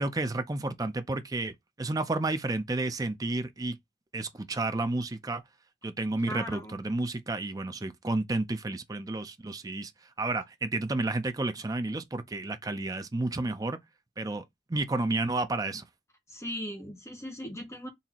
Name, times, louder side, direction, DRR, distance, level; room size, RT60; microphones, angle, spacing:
voice 1, 0.0-3.8 4.1-5.4 5.8-9.9 10.2-13.8 14.2-14.4 14.7-15.8, right 2 dB, 20° right, 0.4 m, -31 dB
voice 2, 6.3-6.7 16.3-17.9, equal, 15° left, 1.2 m, -38 dB
4.0 x 2.8 x 2.8 m
head